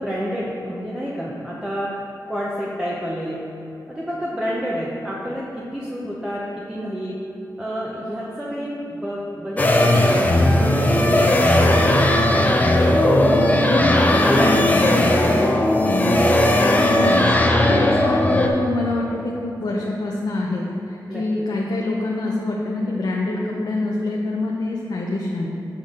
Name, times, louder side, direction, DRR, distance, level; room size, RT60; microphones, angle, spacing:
voice 1, 0.0-1.9 2.3-3.4 3.9-7.2 7.6-12.1 13.6-15.6 21.1-21.4, equal, 10° right, -5 dB, 0.8 m, -29 dB
sound 1, 9.6-18.5, left 1 dB, 20° left, 0.6 m, -17 dB
voice 2, 13.7-14.7 16.6-25.5, left 2 dB, 65° left, -3 dB, 0.7 m, -25 dB
7.4 x 5.8 x 3.7 m, 2.9 s
wide cardioid pair, 100°, 8 cm